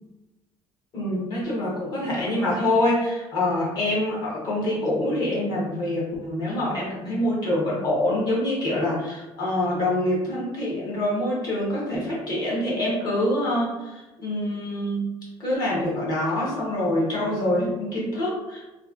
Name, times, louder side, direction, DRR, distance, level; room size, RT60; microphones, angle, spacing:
voice 1, 0.9-15.0 15.4-18.6, left 1 dB, 35° left, -6 dB, 1.3 m, -25 dB
3.1 x 2.5 x 3.8 m, 1.1 s
cardioid pair, 180°, 11 cm